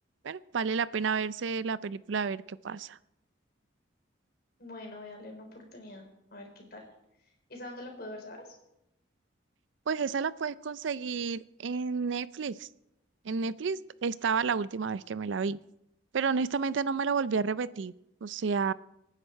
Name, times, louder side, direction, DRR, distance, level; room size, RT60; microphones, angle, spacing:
voice 1, 0.2-3.0 9.9-12.7 13.3-15.6 16.1-17.9 18.2-18.7, right 5 dB, 75° right, 18 dB, 0.4 m, -31 dB
voice 2, 4.6-6.8 7.5-8.6, left 1 dB, 50° left, 2 dB, 3.9 m, -44 dB
25.0 x 9.9 x 4.4 m, 0.85 s
head